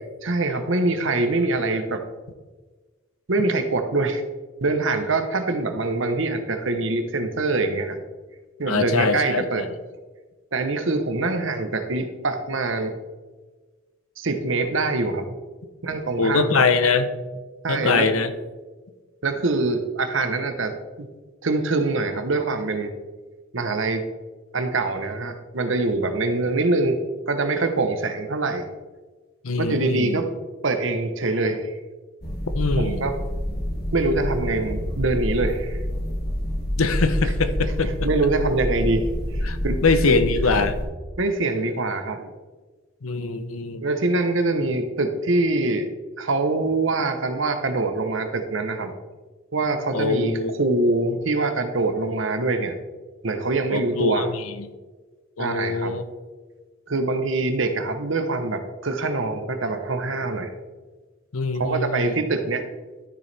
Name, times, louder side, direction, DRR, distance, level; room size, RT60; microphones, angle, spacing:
voice 1, 0.2-2.0 3.3-4.2 4.6-8.0 8.6-9.6 10.5-12.9 14.2-15.4 15.8-16.6 17.6-18.1 19.2-21.1 21.4-22.9 23.5-24.0 24.5-27.0 27.3-28.7 29.6-30.3 30.6-31.7 32.8-33.1 33.9-35.8 37.2-37.3 37.8-39.8 40.1-40.2 41.2-42.3 43.8-45.9 46.2-48.9 49.5-52.8 53.2-54.3 55.4-56.0 56.9-60.5 61.6-62.6, right 2 dB, 65° right, 7 dB, 0.9 m, -24 dB
voice 2, 8.7-9.5 16.2-17.1 17.7-18.3 29.4-30.2 32.5-33.0 36.8-37.9 39.4-40.7 43.0-43.8 49.9-50.5 53.7-54.7 55.4-56.0 61.3-62.2, left 4 dB, 85° left, 10 dB, 0.8 m, -23 dB
sound 1, 32.2-40.8, equal, 50° left, 1.9 m, -27 dB
13.0 x 6.8 x 3.4 m, 1.3 s
head